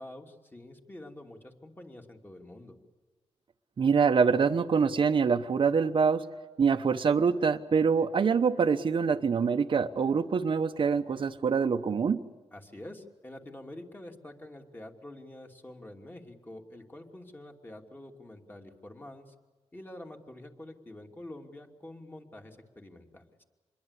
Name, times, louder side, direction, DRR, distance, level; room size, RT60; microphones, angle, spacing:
voice 1, 0.0-2.7 12.5-19.3 19.7-23.3, left 1 dB, 20° left, 3 dB, 2.9 m, -47 dB
voice 2, 3.8-6.2 6.6-12.2, right 5 dB, 55° right, 5 dB, 1.0 m, -25 dB
27.0 x 22.0 x 8.3 m, 1.3 s
wide cardioid pair, 105°, 11 cm